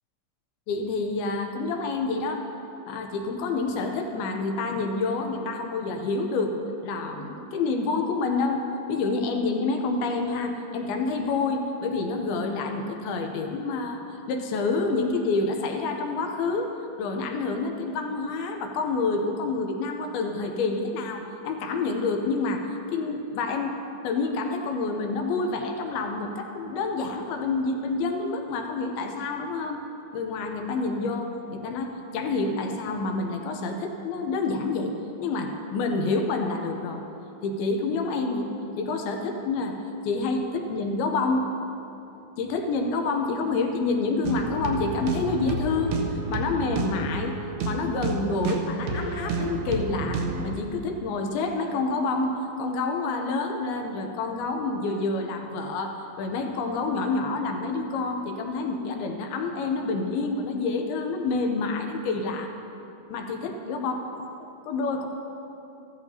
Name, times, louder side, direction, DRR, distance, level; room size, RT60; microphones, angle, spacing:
voice 1, 0.7-2.4 2.9-6.6 6.8-14.0 14.3-16.7 17.0-23.8 24.0-29.8 30.1-37.0 37.4-38.5 38.8-41.5 42.4-46.0 46.3-47.4 47.6-62.5 63.1-64.2 64.7-65.1, left 3 dB, 85° left, 4 dB, 2.7 m, -28 dB
sound 1, 44.2-50.5, right 3 dB, 70° right, 1.9 m, -30 dB
15.5 x 13.0 x 2.8 m, 3.0 s
omnidirectional pair, 4.4 m